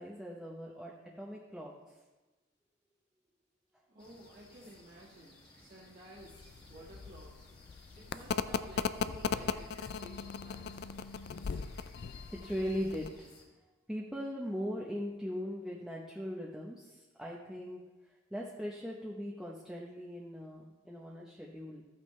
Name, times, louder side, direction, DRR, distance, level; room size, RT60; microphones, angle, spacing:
voice 1, 0.0-1.7 12.3-13.3 13.9-17.8 18.3-21.8, equal, ahead, -3 dB, 0.8 m, -39 dB
voice 2, 3.9-10.7, equal, 45° right, -6 dB, 1.8 m, -54 dB
sound 1, 4.0-13.5, left 2 dB, 25° left, 1.8 m, -59 dB
sound 2, 6.2-13.1, left 6 dB, 55° left, 0.4 m, -38 dB
14.0 x 8.6 x 3.2 m, 1.2 s
head